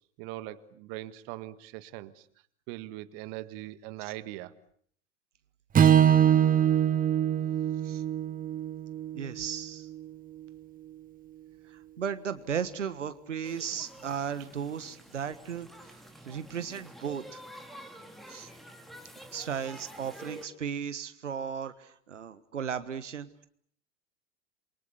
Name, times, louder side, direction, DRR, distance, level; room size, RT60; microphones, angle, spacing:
voice 1, 0.2-2.2 2.7-4.5, right 16 dB, 50° right, 13 dB, 1.7 m, -41 dB
Strum, 5.7-10.1, right 9 dB, 25° right, 1.5 m, -24 dB
voice 2, 9.1-9.9 11.6-15.9 16.3-17.4 18.3-18.5 19.3-23.5, right 7 dB, 85° right, 12 dB, 1.5 m, -36 dB
sound 1, 13.4-20.5, equal, ahead, 3.6 m, -49 dB
28.0 x 23.5 x 8.3 m, 0.62 s
hypercardioid pair, 95°, 35 cm